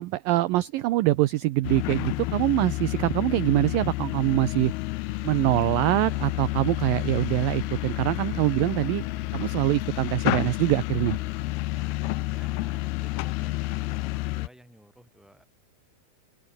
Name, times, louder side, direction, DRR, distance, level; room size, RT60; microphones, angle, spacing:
voice 1, 0.0-4.7 5.2-9.0 9.3-11.2, right 17 dB, 75° right, 2.2 m, -24 dB
sound 1, 1.6-14.5, left 19 dB, 80° left, 2.5 m, -30 dB
sound 2, 6.0-12.8, right 4 dB, 35° right, 4.7 m, -49 dB
voice 2, 11.7-15.4, equal, ahead, 6.4 m, -53 dB
open air
omnidirectional pair, 4.8 m